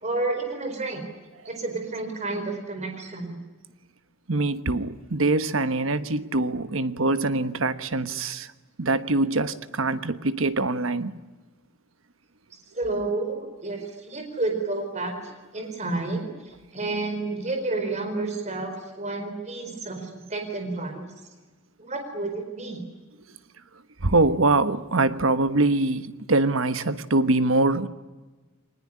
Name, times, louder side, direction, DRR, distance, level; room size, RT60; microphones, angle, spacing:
voice 1, 0.0-1.0 1.4-3.4 12.7-15.2 15.5-21.0 21.8-22.8, right 2 dB, 35° right, 4.5 m, -30 dB
voice 2, 4.3-8.5 8.8-11.1 24.0-27.9, right 2 dB, 75° right, 1.2 m, -23 dB
23.0 x 20.0 x 9.9 m
head